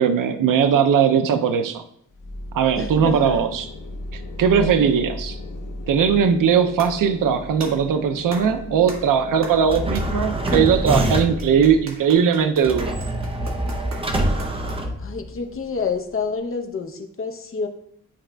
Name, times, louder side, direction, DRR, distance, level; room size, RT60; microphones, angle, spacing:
voice 1, 0.0-1.8 2.5-3.7 4.1-5.4 5.9-13.0, right 7 dB, 90° right, 9 dB, 0.5 m, -19 dB
sound 1, 2.1-11.8, left 2 dB, 75° left, 0.8 m, -35 dB
voice 2, 2.7-3.5 4.5-4.8 15.0-17.7, left 5 dB, 45° left, 5 dB, 0.7 m, -28 dB
sound 2, 6.8-15.1, right 2 dB, 55° right, 1.4 m, -40 dB
sound 3, 9.7-11.5 12.6-15.5, right 1 dB, 20° right, 0.5 m, -25 dB
10.0 x 4.9 x 2.2 m, 0.68 s
wide cardioid pair, 165°, 32 cm